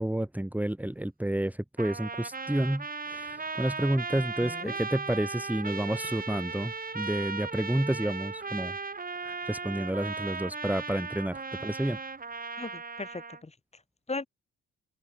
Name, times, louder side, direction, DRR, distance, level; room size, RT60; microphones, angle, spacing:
voice 1, 0.0-8.7 9.2-12.0, right 1 dB, 5° right, 2.4 m, -30 dB
Trumpet, 1.8-13.4, right 4 dB, 30° right, 4.2 m, -37 dB
voice 2, 4.1-4.8 12.6-13.5 14.1-14.3, left 3 dB, 20° left, 4.2 m, -38 dB
open air
cardioid pair, 90°, 30 cm